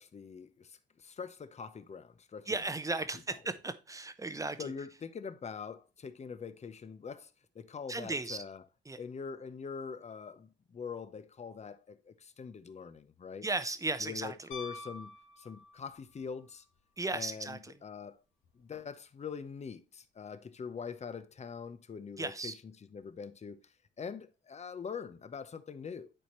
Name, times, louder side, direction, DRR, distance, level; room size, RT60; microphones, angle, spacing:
voice 1, 0.0-2.6 3.3-3.4 4.6-8.6 9.0-13.5 14.0-16.6 17.1-18.2 18.5-26.1, left 6 dB, 35° left, 0.8 m, -44 dB
voice 2, 2.5-4.7 7.9-8.4 8.9-9.0 13.4-14.5 17.0-17.7 22.2-22.5, right 3 dB, 15° right, 0.8 m, -36 dB
Piano, 14.5-16.1 18.4-18.5, left 3 dB, 90° left, 1.8 m, -46 dB
10.0 x 4.3 x 3.1 m
cardioid pair, 90°, 20 cm